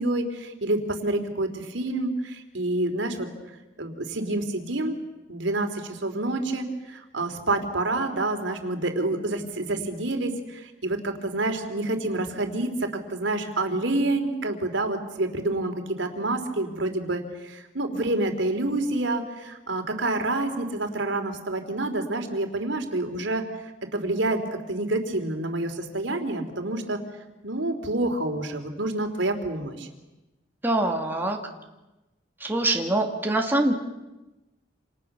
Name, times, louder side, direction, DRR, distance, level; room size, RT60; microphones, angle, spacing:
voice 1, 0.0-3.3 3.8-5.0 5.3-23.4 23.9-24.4 24.7-27.0 27.4-29.9, right 2 dB, 80° right, 6 dB, 3.4 m, -28 dB
voice 2, 30.6-31.4 32.4-33.7, right 1 dB, 10° right, 1 dB, 2.2 m, -24 dB
29.0 x 28.0 x 6.9 m, 1.0 s
head